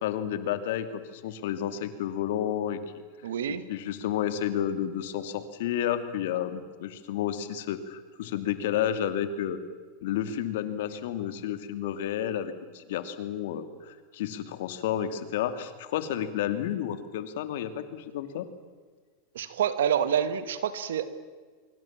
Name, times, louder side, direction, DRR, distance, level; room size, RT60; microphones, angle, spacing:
voice 1, 0.0-2.8 3.7-9.6 10.0-18.5, left 10 dB, 70° left, 10 dB, 2.5 m, -31 dB
voice 2, 3.2-3.6 19.4-21.3, right 8 dB, 85° right, 12 dB, 1.9 m, -28 dB
25.0 x 24.0 x 7.5 m, 1.5 s
hypercardioid pair, 110°, 0 cm